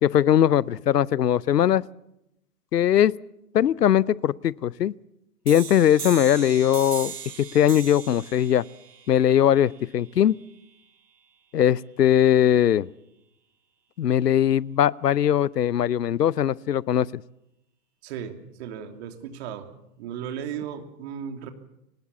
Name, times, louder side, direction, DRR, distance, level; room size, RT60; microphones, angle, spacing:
voice 1, 0.0-1.9 2.7-3.1 3.5-4.9 5.5-8.6 9.1-10.4 11.5-12.9 14.0-17.2, left 10 dB, 90° left, 23 dB, 0.7 m, -20 dB
sound 1, 5.5-10.9, right 6 dB, 85° right, 1.9 m, -39 dB
voice 2, 18.0-19.7 20.0-21.5, right 8 dB, 45° right, 6 dB, 3.0 m, -35 dB
23.0 x 19.5 x 7.1 m, 0.84 s
hypercardioid pair, 130°, 46 cm